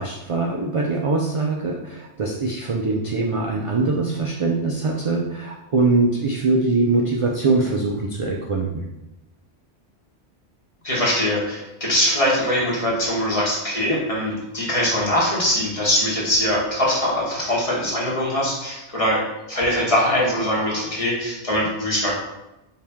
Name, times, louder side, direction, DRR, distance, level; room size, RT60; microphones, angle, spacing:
voice 1, 0.0-8.9, right 3 dB, 55° right, -1 dB, 0.3 m, -22 dB
voice 2, 10.8-22.1, equal, 30° left, -6 dB, 1.3 m, -22 dB
4.6 x 2.8 x 3.5 m, 0.95 s
omnidirectional pair, 1.1 m